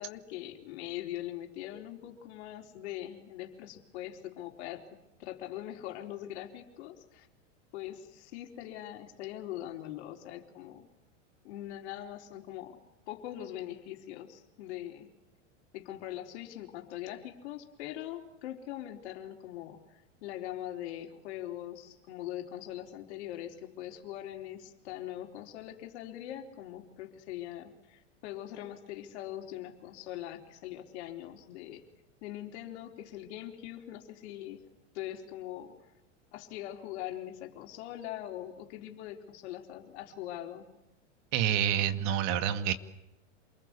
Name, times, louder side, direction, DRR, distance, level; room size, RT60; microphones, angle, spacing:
voice 1, 0.0-4.8 5.2-7.3 7.7-10.9 11.4-12.8 13.1-15.1 15.7-31.8 32.2-34.6 34.9-35.8 36.3-40.7, left 12 dB, 60° left, 3 dB, 4.2 m, -42 dB
voice 2, 41.3-42.7, right 9 dB, 50° right, 9 dB, 2.2 m, -28 dB
28.0 x 21.0 x 8.4 m, 0.92 s
hypercardioid pair, 105°, 37 cm